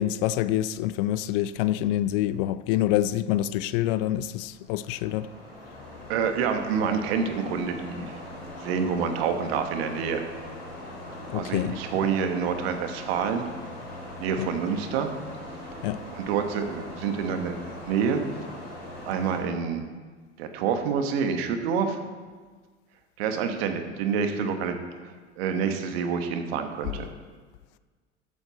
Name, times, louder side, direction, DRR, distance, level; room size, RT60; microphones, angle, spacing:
voice 1, 0.0-5.3 11.3-11.7 14.4-14.5 15.8-16.0, left 13 dB, 50° left, 0.5 m, -26 dB
sound 1, 4.4-19.4, left 1 dB, 75° left, 4.0 m, -41 dB
voice 2, 6.1-8.2 8.6-10.2 11.3-13.5 14.2-15.1 16.1-18.2 19.0-19.9 20.4-22.0 23.2-24.8 25.0-27.1, right 6 dB, 60° right, 1.5 m, -27 dB
14.0 x 8.8 x 4.2 m
figure-of-eight pair, 75°, 34 cm